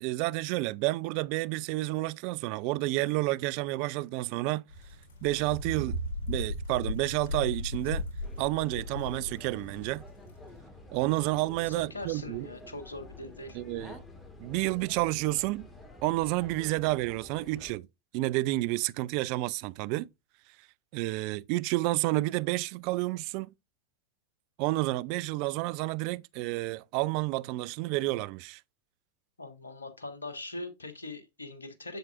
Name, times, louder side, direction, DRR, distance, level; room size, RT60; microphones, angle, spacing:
voice 1, 0.0-4.6 5.2-6.0 6.3-8.0 8.4-10.0 10.9-12.5 13.5-14.0 14.4-15.7 16.0-17.9 18.1-20.1 20.9-23.5 24.6-28.6, right 20 dB, 45° right, 0.3 m, -30 dB
sound 1, 4.7-10.4, left 1 dB, 55° left, 3.9 m, -36 dB
sound 2, 8.2-17.8, left 2 dB, 15° left, 1.8 m, -49 dB
voice 2, 11.7-13.6 29.4-32.0, left 2 dB, 75° left, 1.4 m, -41 dB
7.7 x 7.3 x 2.4 m
figure-of-eight pair, 90°, 0 cm